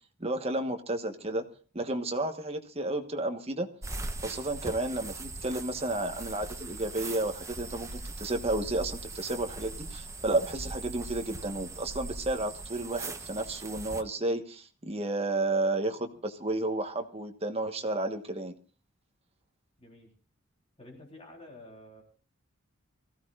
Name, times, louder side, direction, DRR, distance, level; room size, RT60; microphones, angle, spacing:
voice 1, 0.2-1.4 1.7-3.7 4.2-18.5, right 2 dB, 30° right, 5 dB, 1.3 m, -32 dB
sound 1, 3.8-14.0, right 2 dB, 15° right, 0.9 m, -40 dB
voice 2, 19.8-20.1 20.8-22.0, left 1 dB, 30° left, -1 dB, 3.7 m, -50 dB
25.0 x 15.0 x 2.5 m, 0.38 s
head